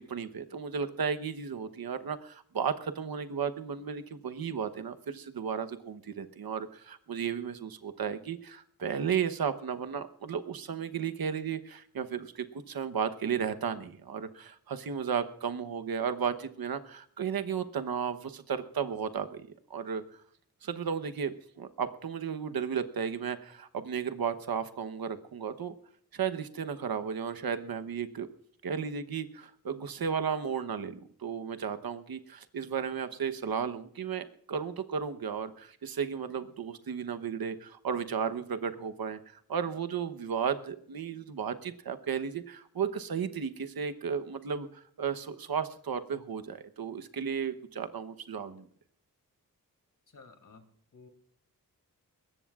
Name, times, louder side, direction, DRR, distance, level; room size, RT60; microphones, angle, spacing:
voice 1, 0.0-20.0 20.6-25.7 26.1-28.3 28.6-48.6, right 7 dB, 90° right, 9 dB, 1.0 m, -34 dB
voice 2, 50.1-50.6 50.9-51.1, left 4 dB, 65° left, 6 dB, 2.7 m, -53 dB
22.0 x 18.5 x 2.4 m, 0.63 s
wide cardioid pair, 85°, 35 cm